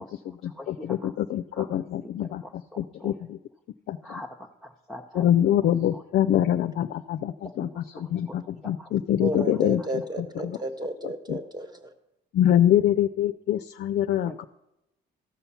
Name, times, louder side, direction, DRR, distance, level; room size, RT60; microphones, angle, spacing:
voice 1, 0.0-1.1 1.5-1.7 2.4-3.1 4.0-4.3 4.6-6.0 7.4-8.3 8.8-8.9 9.4-9.5 10.4-10.5 14.2-14.4, equal, ahead, 3 dB, 0.7 m, -44 dB
voice 2, 0.7-2.4 2.8-3.4 3.9-4.0 5.2-9.8 11.3-11.4 12.3-14.4, left 11 dB, 60° left, 11 dB, 0.4 m, -24 dB
voice 3, 9.2-11.9, right 1 dB, 20° right, 8 dB, 1.3 m, -32 dB
14.0 x 5.7 x 5.7 m, 0.91 s
cardioid pair, 90°, 20 cm